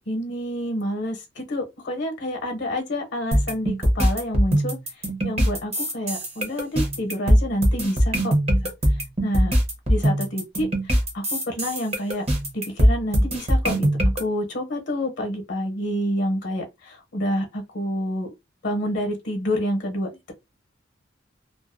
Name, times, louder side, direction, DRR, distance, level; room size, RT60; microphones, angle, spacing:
voice 1, 0.0-8.3 8.9-9.6 9.9-12.3 12.5-13.9 14.2-18.3 18.6-20.3, equal, 65° left, 0.7 m, -28 dB
sound 1, 3.3-14.2, equal, 35° right, 0.7 m, -21 dB
2.3 x 2.2 x 2.5 m
head